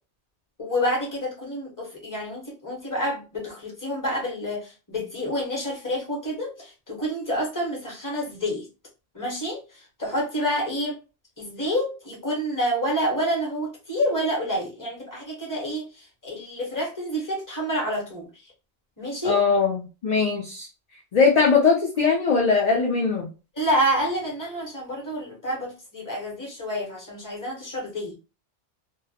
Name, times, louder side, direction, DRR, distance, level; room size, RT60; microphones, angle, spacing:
voice 1, 0.6-8.7 9.1-9.6 10.0-11.0 11.4-18.3 19.0-19.4 23.6-28.1, equal, 20° left, -2 dB, 0.9 m, -28 dB
voice 2, 19.2-20.7 21.1-23.3, left 5 dB, 45° left, -2 dB, 0.6 m, -20 dB
2.2 x 2.0 x 2.7 m, 0.31 s
omnidirectional pair, 1.1 m